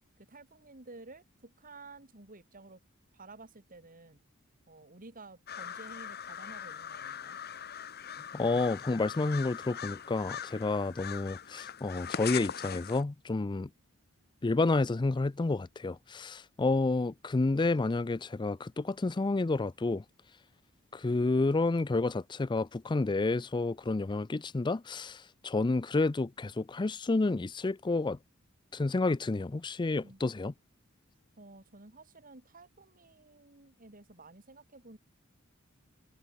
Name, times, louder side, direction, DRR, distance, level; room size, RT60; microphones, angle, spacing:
voice 1, 0.2-2.8 3.1-4.2 4.7-7.4 30.0-30.2 31.4-35.0, right 3 dB, 40° right, 2.7 m, -52 dB
sound 1, 5.5-13.0, left 8 dB, 45° left, 1.7 m, -41 dB
voice 2, 8.3-13.7 14.4-20.0 20.9-28.2 28.7-30.5, left 3 dB, 20° left, 0.4 m, -30 dB
head